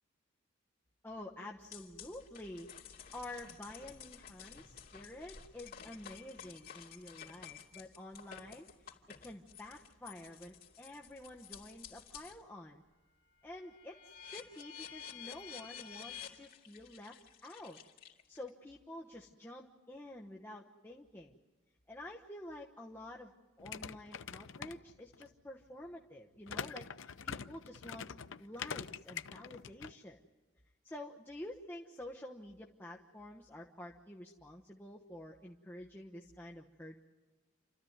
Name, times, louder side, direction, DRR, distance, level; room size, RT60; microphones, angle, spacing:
voice 1, 1.0-12.8 13.4-17.8 18.3-21.4 21.9-28.1 28.4-30.2 30.8-37.0, left 1 dB, 10° left, -1 dB, 1.1 m, -49 dB
sound 1, 1.7-12.4 12.8-18.5, left 8 dB, 50° left, 2.9 m, -52 dB
sound 2, 23.6-25.3 26.5-29.9, left 6 dB, 80° left, 0.6 m, -44 dB
29.0 x 14.0 x 9.5 m, 1.2 s
head